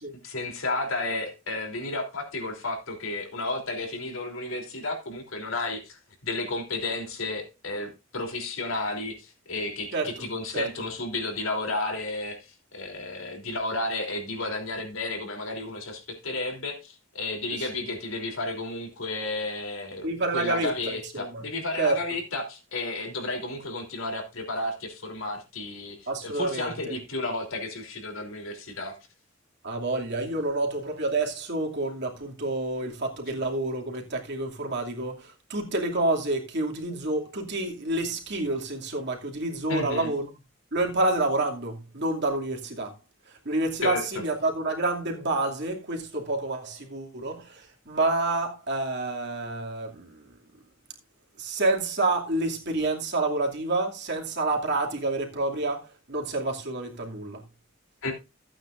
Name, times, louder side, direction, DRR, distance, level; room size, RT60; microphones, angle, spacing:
voice 1, 0.2-29.0 39.7-40.1 43.8-44.0 58.0-58.1, left 2 dB, 80° left, 3.4 m, -32 dB
voice 2, 9.9-10.2 10.5-10.7 17.6-17.8 20.0-20.7 21.1-21.4 21.8-22.0 26.1-26.9 29.6-40.3 40.7-43.0 43.3-50.2 51.4-57.4, right 2 dB, 55° right, 2.6 m, -28 dB
15.5 x 8.8 x 2.6 m
head